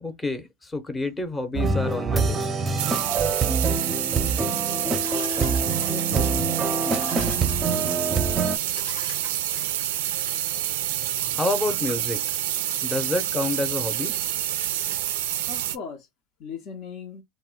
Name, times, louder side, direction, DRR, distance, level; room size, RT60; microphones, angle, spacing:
voice 1, 0.0-2.5 11.0-12.2 12.8-14.1, left 2 dB, 15° left, 0.6 m, -28 dB
sound 1, 1.5-8.6, right 4 dB, 25° right, 0.5 m, -25 dB
sound 2, 2.8-15.8, right 12 dB, 80° right, 0.3 m, -28 dB
sound 3, 5.0-6.3 6.9-7.9 8.4-8.5 8.8-10.0, left 5 dB, 80° left, 0.9 m, -43 dB
voice 2, 5.9-6.4 8.1-8.2 11.7-11.8 15.5-16.1 16.4-17.2, left 6 dB, 55° left, 0.5 m, -38 dB
2.2 x 2.1 x 3.6 m
hypercardioid pair, 95°, 0 cm